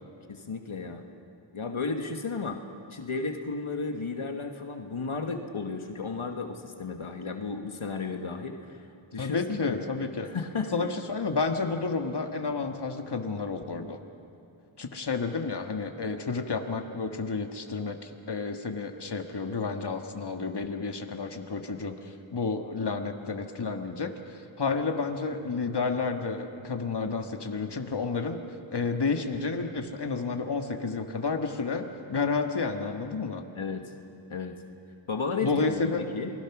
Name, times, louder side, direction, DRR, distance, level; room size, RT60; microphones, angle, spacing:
voice 1, 0.3-1.0 1.5-2.6 2.9-8.9 9.1-9.8 10.2-10.9 33.5-33.9 34.3-34.6 35.1-36.3, left 4 dB, 80° left, 5 dB, 1.5 m, -33 dB
voice 2, 9.2-10.3 10.7-14.0 14.8-28.4 28.7-33.4 35.4-36.0, left 4 dB, 55° left, 5 dB, 1.6 m, -31 dB
28.0 x 21.0 x 6.0 m, 2.7 s
wide cardioid pair, 45°, 48 cm